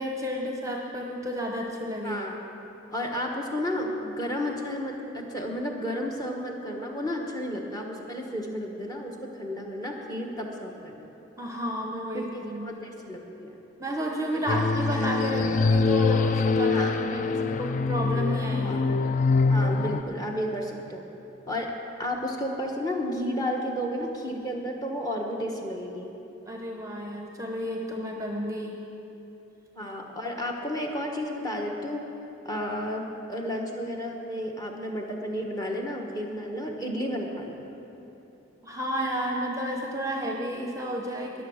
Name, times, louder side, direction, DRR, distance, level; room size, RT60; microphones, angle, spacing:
voice 1, 0.0-2.2 11.4-12.8 13.8-19.2 26.5-28.7 38.6-41.4, equal, 15° right, 1 dB, 0.8 m, -31 dB
voice 2, 2.0-2.4 2.9-11.1 12.1-13.6 14.5-14.6 16.7-17.0 17.2-17.4 18.6-18.8 19.5-21.0 21.5-21.7 22.0-26.1 29.7-32.0 32.4-33.0 33.3-37.6, equal, 20° left, 0 dB, 1.2 m, -32 dB
sound 1, 14.5-20.0, left 4 dB, 35° left, 0.3 m, -24 dB
20.0 x 7.2 x 6.4 m, 3.0 s
head